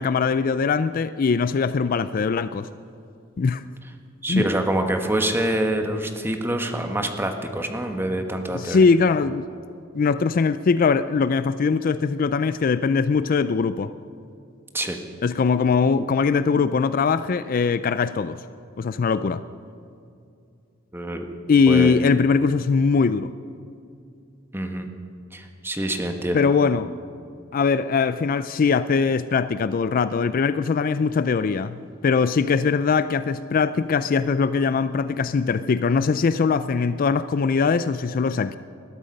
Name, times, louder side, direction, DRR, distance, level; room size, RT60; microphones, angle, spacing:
voice 1, 0.0-2.7 3.4-3.6 4.3-4.5 8.5-9.5 9.9-13.9 15.2-18.4 18.8-19.4 21.5-23.3 26.3-26.9 27.5-38.6, left 5 dB, 45° left, 14 dB, 0.4 m, -21 dB
voice 2, 4.2-8.9 14.7-15.0 20.9-21.3 21.7-22.0 24.5-24.9 25.3-26.5, right 1 dB, 10° right, 5 dB, 1.3 m, -26 dB
20.0 x 12.5 x 5.3 m, 2.5 s
head